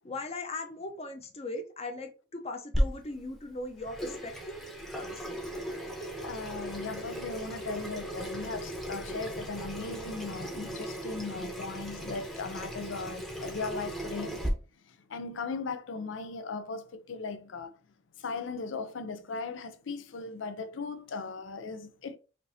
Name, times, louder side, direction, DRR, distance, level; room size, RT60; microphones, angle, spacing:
voice 1, 0.0-4.6 4.9-5.4, left 2 dB, 35° left, 0.8 m, -39 dB
Water tap faucet / Sink (filling or washing), 2.7-14.5, equal, ahead, 0.8 m, -36 dB
voice 2, 6.2-14.4 14.8-17.8 18.2-22.2, left 4 dB, 80° left, 0.5 m, -38 dB
5.2 x 2.7 x 2.7 m
head